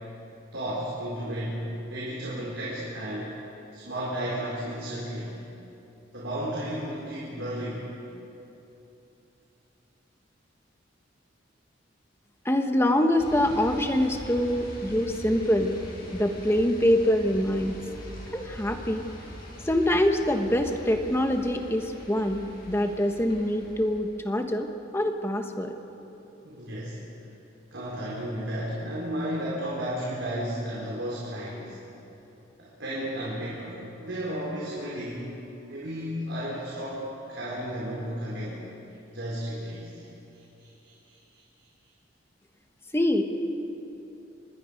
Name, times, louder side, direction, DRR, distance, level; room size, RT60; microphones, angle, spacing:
voice 1, 0.5-3.3 3.7-5.4 6.1-7.9 26.4-27.0 27.7-31.8 32.6-35.3 35.7-38.6 39.1-40.1 40.6-41.4, equal, 75° right, -7 dB, 4.6 m, -33 dB
voice 2, 12.4-15.8 16.1-17.8 18.3-19.0 19.6-24.7 24.9-25.7 42.9-43.2, left 1 dB, 15° left, 5 dB, 1.2 m, -24 dB
sound 1, 13.2-24.3, equal, 50° left, 6.3 m, -43 dB
26.5 x 20.5 x 5.2 m, 3.0 s
head